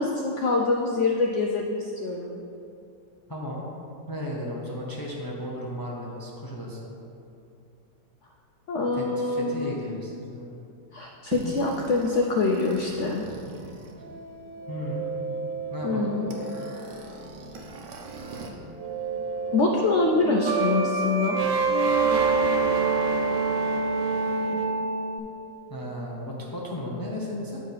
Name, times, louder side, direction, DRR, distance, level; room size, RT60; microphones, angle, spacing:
voice 1, 0.0-2.4 8.7-9.8 10.9-13.2 15.8-16.3 19.5-21.4, left 3 dB, 75° left, 0 dB, 0.6 m, -25 dB
voice 2, 3.3-3.7 4.1-7.0 8.9-10.5 14.7-15.0 15.7-16.2 25.7-27.6, equal, 30° left, -3 dB, 0.4 m, -34 dB
sound 1, 11.3-18.5 18.8-25.2, right 4 dB, 90° right, 1.4 m, -28 dB
9.1 x 3.6 x 5.6 m, 2.6 s
omnidirectional pair, 1.8 m